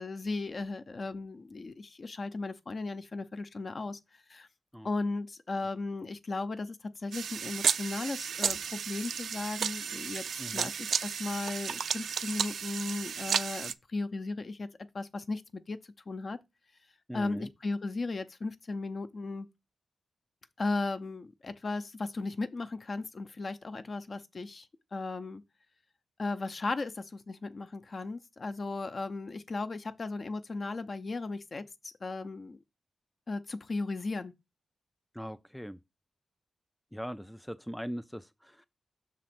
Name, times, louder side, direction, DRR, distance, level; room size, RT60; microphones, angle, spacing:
voice 1, 0.0-4.5 4.8-10.2 10.5-14.7 14.9-15.4 15.7-15.8 16.1-16.4 17.1-19.5 20.6-25.4 26.2-32.6 33.3-34.3, left 3 dB, 40° left, 0.6 m, -36 dB
sound 1, 7.1-13.7, right 7 dB, 85° right, 0.3 m, -33 dB
voice 2, 10.4-10.7 17.1-17.5 35.1-35.8 36.9-38.7, equal, ahead, 0.3 m, -40 dB
6.2 x 3.7 x 5.9 m
wide cardioid pair, 135°, 0 cm